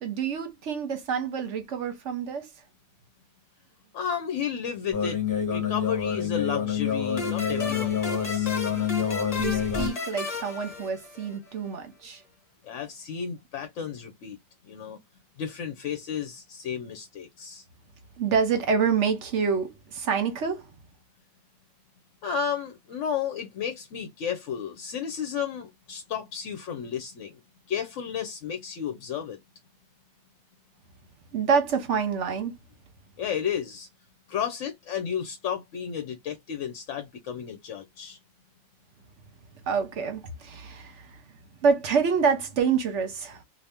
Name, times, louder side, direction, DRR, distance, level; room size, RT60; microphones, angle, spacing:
voice 1, 0.0-2.5 9.4-12.2 18.2-20.7 31.3-32.5 39.6-41.2 41.6-43.4, right 6 dB, 60° right, 1.1 m, -27 dB
voice 2, 3.9-5.2 5.5-8.6 12.6-14.4 14.6-15.0 15.4-17.6 22.2-27.4 27.7-29.4 33.2-33.9 34.3-38.2, left 8 dB, 70° left, 0.9 m, -33 dB
sound 1, 4.9-9.9, left 8 dB, 15° left, 1.3 m, -27 dB
sound 2, 7.2-11.5, left 3 dB, 35° left, 0.9 m, -35 dB
2.8 x 2.5 x 3.4 m
omnidirectional pair, 1.4 m